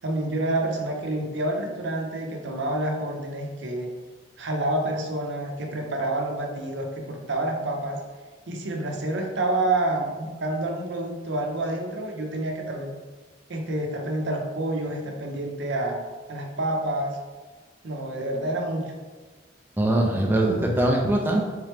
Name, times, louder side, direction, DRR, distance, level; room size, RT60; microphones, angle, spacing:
voice 1, 0.0-3.9 4.4-8.0 8.5-12.9 13.5-16.0 16.3-17.2 17.8-18.9, right 1 dB, 65° right, 2 dB, 0.6 m, -28 dB
voice 2, 19.8-21.4, right 1 dB, 10° right, -1 dB, 0.3 m, -22 dB
3.6 x 3.1 x 3.3 m, 1.4 s
head